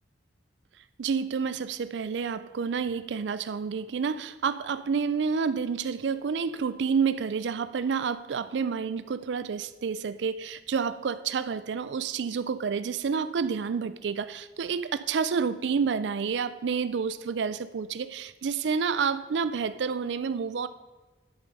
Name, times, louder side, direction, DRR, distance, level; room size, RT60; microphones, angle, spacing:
voice 1, 1.0-20.7, right 6 dB, 75° right, 13 dB, 0.4 m, -29 dB
10.5 x 7.5 x 5.3 m, 1.2 s
head